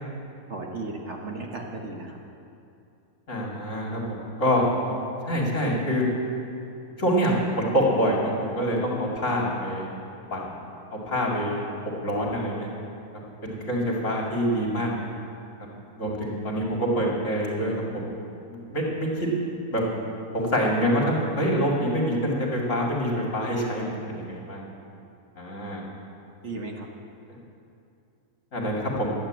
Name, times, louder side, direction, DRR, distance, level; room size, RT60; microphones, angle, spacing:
voice 1, 0.5-2.2 18.8-18.9 26.4-26.9, right 3 dB, 50° right, 0 dB, 1.3 m, -35 dB
voice 2, 3.3-4.7 5.3-6.1 7.0-9.9 10.3-10.6 10.9-11.6 12.0-12.7 13.4-15.1 16.0-17.7 18.4-19.3 19.7-19.8 20.3-24.6 25.4-25.8 28.5-29.1, equal, 50° left, -3 dB, 2.6 m, -26 dB
12.0 x 8.1 x 8.7 m, 2.7 s
omnidirectional pair, 1.6 m